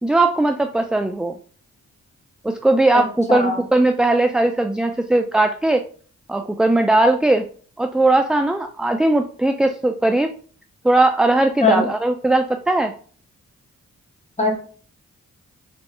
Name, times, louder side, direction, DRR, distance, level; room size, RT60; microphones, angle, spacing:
voice 1, 0.0-1.4 2.4-5.8 6.3-7.4 7.8-10.3 10.8-12.9, right 2 dB, 5° right, 6 dB, 0.3 m, -18 dB
voice 2, 3.3-3.6 11.6-11.9 14.4-14.6, left 2 dB, 20° left, 1 dB, 1.4 m, -19 dB
3.6 x 3.1 x 3.0 m, 0.43 s
cardioid pair, 50°, 33 cm